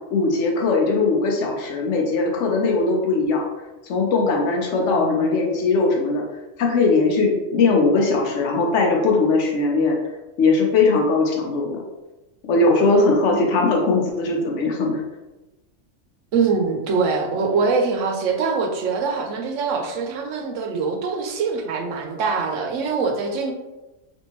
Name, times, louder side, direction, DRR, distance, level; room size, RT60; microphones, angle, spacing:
voice 1, 0.1-3.5 3.8-6.2 6.6-10.0 10.4-11.8 12.5-15.0, left 3 dB, 75° left, 0 dB, 0.9 m, -20 dB
voice 2, 4.7-5.4 13.3-13.4 16.3-23.5, right 4 dB, 90° right, 2 dB, 1.0 m, -24 dB
3.4 x 2.6 x 2.9 m, 1.1 s
omnidirectional pair, 1.3 m